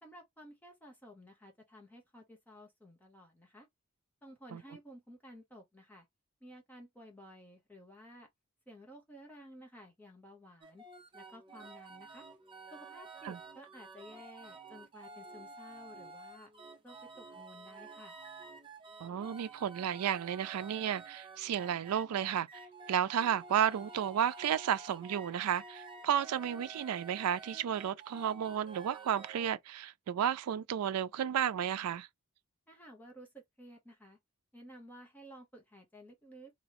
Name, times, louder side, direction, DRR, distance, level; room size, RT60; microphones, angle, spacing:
voice 1, 0.0-3.7 4.2-6.1 6.4-8.3 8.7-10.8 11.1-12.3 12.7-16.5 16.8-18.2 32.7-34.2 34.5-36.5, equal, 10° left, 0.9 m, -54 dB
sound 1, 10.6-29.5, right 3 dB, 25° right, 0.7 m, -51 dB
voice 2, 19.0-22.5 22.9-32.1, right 9 dB, 90° right, 0.4 m, -32 dB
3.0 x 2.7 x 3.0 m
head